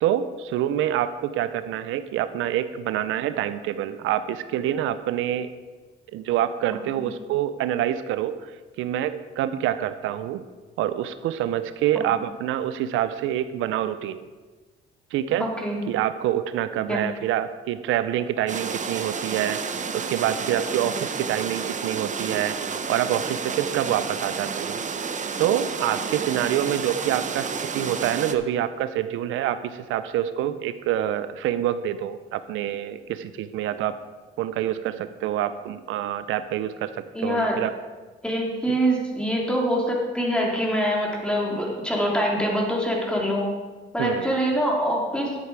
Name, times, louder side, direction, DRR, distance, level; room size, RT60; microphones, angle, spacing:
voice 1, 0.0-5.5 6.1-8.5 8.8-10.4 10.8-14.3 15.1-15.5 15.9-24.8 25.4-33.9 34.4-37.7 38.7-38.8 44.0-44.4, right 11 dB, 90° right, 12 dB, 0.6 m, -26 dB
voice 2, 15.4-15.8 16.9-17.0 37.1-37.6 38.2-43.5 43.9-45.4, equal, 5° left, -2 dB, 2.9 m, -24 dB
sound 1, 18.5-28.4, right 5 dB, 40° right, 0.8 m, -30 dB
11.0 x 8.4 x 4.7 m, 1.3 s
cardioid pair, 90°, 20 cm